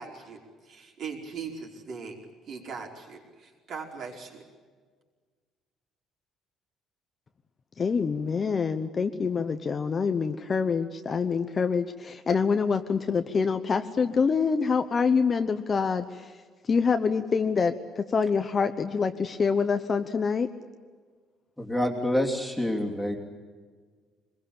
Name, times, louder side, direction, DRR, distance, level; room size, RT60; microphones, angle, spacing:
voice 1, 0.0-2.2 2.5-4.4, right 5 dB, 45° right, 1 dB, 5.0 m, -40 dB
voice 2, 7.8-16.3 16.6-20.5, left 5 dB, 25° left, 8 dB, 0.9 m, -26 dB
voice 3, 21.6-23.2, left 1 dB, ahead, 0 dB, 3.1 m, -27 dB
25.5 x 21.5 x 8.8 m, 1.5 s
cardioid pair, 175°, 0 cm